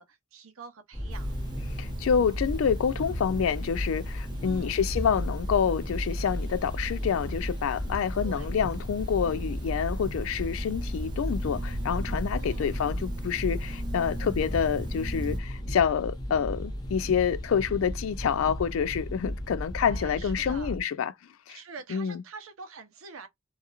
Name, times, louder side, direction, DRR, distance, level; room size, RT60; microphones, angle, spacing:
voice 1, 0.0-1.3 4.4-4.8 8.2-8.6 12.3-12.9 19.8-20.8 21.5-23.3, right 4 dB, 80° right, 0.7 m, -46 dB
sound 1, 0.9-20.8, equal, 20° left, 1.0 m, -36 dB
sound 2, 1.1-15.4, equal, 20° right, 0.5 m, -35 dB
voice 2, 1.8-21.1 21.5-21.6 21.9-22.2, left 7 dB, 75° left, 0.3 m, -27 dB
sound 3, 12.3-19.0, equal, 45° left, 0.8 m, -49 dB
2.8 x 2.3 x 2.3 m
head